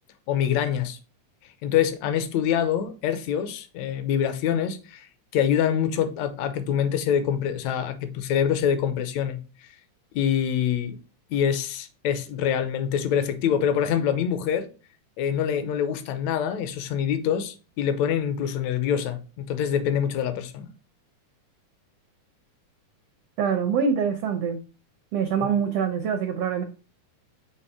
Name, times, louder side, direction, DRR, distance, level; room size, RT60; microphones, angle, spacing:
voice 1, 0.3-1.0 1.6-5.1 5.3-9.4 10.1-11.0 11.3-14.7 15.2-20.7, left 9 dB, 75° left, 1.8 m, -25 dB
voice 2, 23.4-24.6 25.1-26.6, right 6 dB, 80° right, 1.3 m, -24 dB
7.1 x 3.0 x 4.7 m
omnidirectional pair, 3.6 m